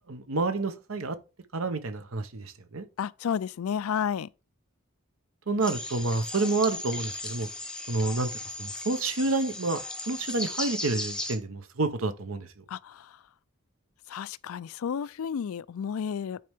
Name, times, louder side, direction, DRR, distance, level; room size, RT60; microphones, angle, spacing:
voice 1, 0.1-1.2 1.5-2.9 5.5-7.5 7.9-12.5, right 3 dB, 70° right, 0.9 m, -29 dB
voice 2, 3.0-4.3 12.7-13.2 14.1-16.4, left 7 dB, 80° left, 0.4 m, -32 dB
sound 1, 5.6-11.4, left 2 dB, 5° left, 0.8 m, -36 dB
9.3 x 4.3 x 3.5 m
head